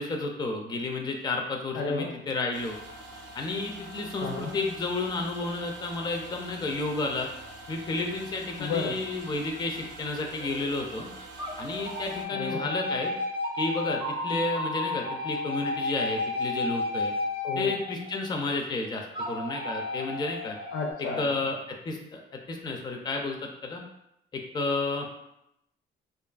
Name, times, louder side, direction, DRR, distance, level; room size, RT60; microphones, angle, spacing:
voice 1, 0.0-2.8 3.4-7.3 7.7-11.1 11.6-13.1 13.6-17.1 17.6-20.6 21.2-22.2 22.5-23.8 24.3-25.1, left 3 dB, 20° left, 2 dB, 0.4 m, -31 dB
voice 2, 1.7-2.1 4.2-4.6 8.6-9.0 12.3-12.7 17.4-17.8 20.7-21.2, left 3 dB, 75° left, 1 dB, 0.6 m, -32 dB
sound 1, 2.5-12.2, right 1 dB, 65° right, 0.5 m, -45 dB
sound 2, 10.3-10.9 11.4-18.5 19.1-20.9, left 2 dB, 25° right, 0.6 m, -33 dB
2.6 x 2.4 x 2.3 m, 0.82 s
cardioid pair, 90°, 20 cm